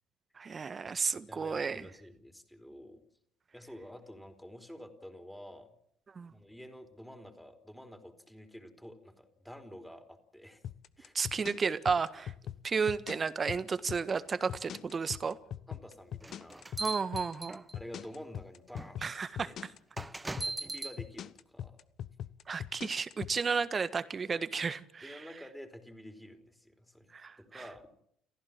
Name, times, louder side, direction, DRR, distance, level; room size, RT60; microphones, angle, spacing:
voice 1, 0.4-1.8 6.1-6.3 11.1-12.3 12.6-15.4 16.8-17.6 19.0-19.5 22.5-25.2 27.1-27.6, right 5 dB, 30° right, 1.5 m, -33 dB
voice 2, 1.3-3.0 3.5-5.7 6.3-10.6 11.0-11.1 14.7-14.8 15.7-16.8 17.7-19.6 20.2-21.8 22.5-22.7 25.0-27.9, equal, 5° left, 4.3 m, -50 dB
sound 1, 10.6-23.4, left 10 dB, 50° left, 1.0 m, -41 dB
sound 2, 16.2-18.0 18.8-18.9 20.0-21.0, right 2 dB, 15° right, 1.0 m, -39 dB
30.0 x 15.0 x 7.5 m
figure-of-eight pair, 55°, 0 cm